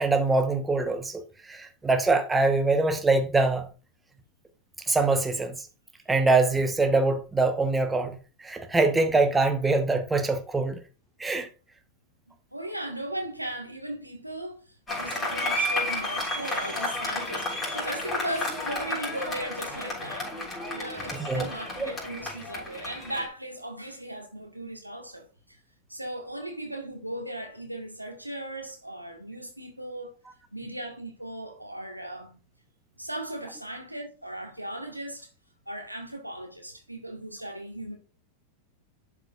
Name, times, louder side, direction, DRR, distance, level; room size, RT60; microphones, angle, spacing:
voice 1, 0.0-3.7 4.9-5.6 6.1-10.8 11.2-11.5 21.2-21.5 21.8-21.9, right 3 dB, 10° right, 0.9 m, -24 dB
voice 2, 12.5-14.6 15.0-20.3 20.7-25.2 25.9-30.1 30.5-32.4 33.0-35.3 35.7-38.0, right 1 dB, 90° right, 1.5 m, -37 dB
Applause, 14.9-23.3, left 1 dB, 15° left, 3.5 m, -32 dB
11.0 x 4.8 x 2.4 m
figure-of-eight pair, 90°, 0 cm